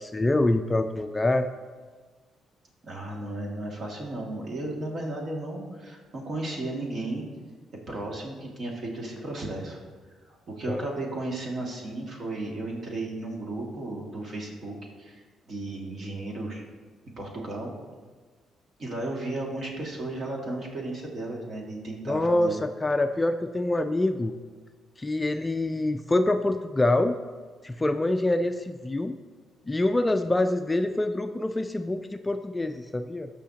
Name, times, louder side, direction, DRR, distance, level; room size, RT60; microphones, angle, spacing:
voice 1, 0.0-1.5 10.7-10.8 22.1-24.3 25.0-27.2 27.6-29.2 29.7-33.3, left 2 dB, 15° left, 8 dB, 0.4 m, -25 dB
voice 2, 2.8-7.2 7.9-9.8 10.2-16.6 17.2-17.7 18.8-22.6, right 2 dB, 50° right, -1 dB, 2.1 m, -34 dB
15.5 x 5.7 x 2.9 m, 1.4 s
cardioid pair, 90°, 0 cm